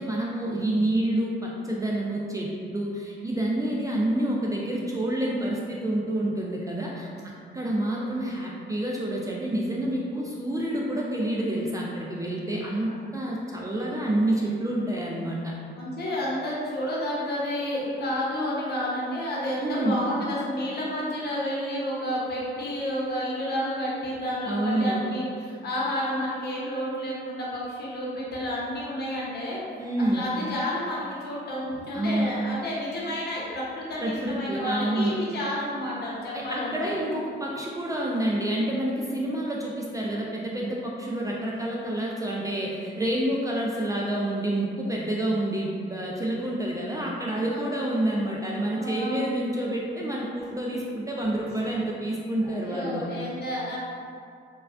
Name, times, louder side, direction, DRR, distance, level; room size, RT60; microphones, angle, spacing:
voice 1, 0.0-7.1 7.5-15.5 19.6-20.0 24.5-25.1 29.8-30.3 31.9-32.3 34.0-35.1 36.3-53.0, right 1 dB, 15° right, -4 dB, 0.3 m, -28 dB
voice 2, 7.6-8.0 12.8-13.0 15.8-29.6 30.0-36.9 47.3-47.9 48.7-49.3 51.5-51.6 52.4-53.8, left 1 dB, 55° left, -6 dB, 0.9 m, -31 dB
3.2 x 2.2 x 2.4 m, 2.3 s
cardioid pair, 90°, 20 cm